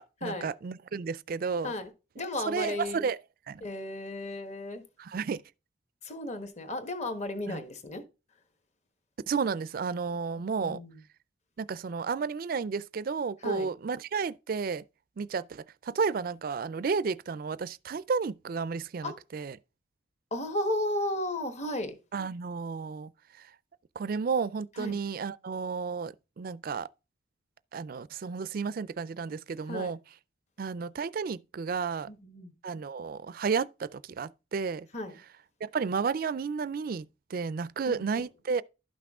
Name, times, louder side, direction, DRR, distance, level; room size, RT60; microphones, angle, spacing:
voice 1, 0.0-1.7 2.5-3.2 3.5-3.6 5.0-5.4 7.5-7.6 9.3-10.8 11.6-14.8 15.2-19.6 22.1-23.1 24.0-26.9 27.7-30.0 30.6-32.1 32.6-34.9 35.6-38.6, right 5 dB, 50° right, 0.4 m, -32 dB
voice 2, 2.2-3.0 3.6-4.8 6.0-8.0 10.4-11.0 13.4-13.7 19.0-19.2 20.3-22.0 24.8-25.0 29.7-29.9 32.1-32.5 34.9-35.1 37.9-38.1, left 1 dB, 35° left, 1.2 m, -34 dB
11.5 x 5.9 x 3.6 m
head